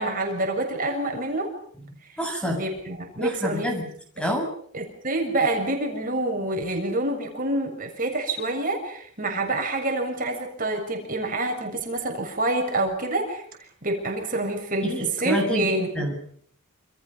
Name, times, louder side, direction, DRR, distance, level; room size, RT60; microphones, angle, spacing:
voice 1, 0.0-1.5 2.0-2.2 2.5-3.7 4.7-13.4 13.8-14.9 15.2-15.9, right 2 dB, 40° right, 3 dB, 6.9 m, -27 dB
voice 2, 2.2-2.6 3.2-3.9 4.2-4.5 14.8-16.1, equal, 5° left, 2 dB, 7.7 m, -28 dB
29.0 x 28.0 x 5.8 m, 0.62 s
head